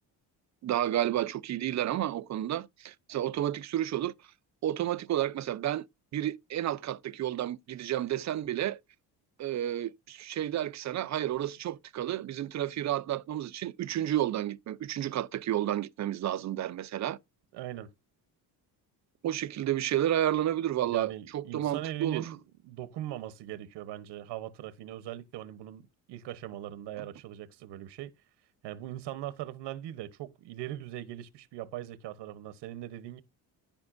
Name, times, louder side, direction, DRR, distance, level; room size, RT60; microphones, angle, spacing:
voice 1, 0.6-4.1 4.6-5.8 6.1-8.8 9.4-17.2 19.2-22.3, right 12 dB, 45° right, 0.6 m, -31 dB
voice 2, 17.5-17.9 20.8-28.1 28.6-33.2, right 13 dB, 90° right, 1.1 m, -40 dB
15.0 x 5.4 x 2.6 m
cardioid pair, 140°, 40 cm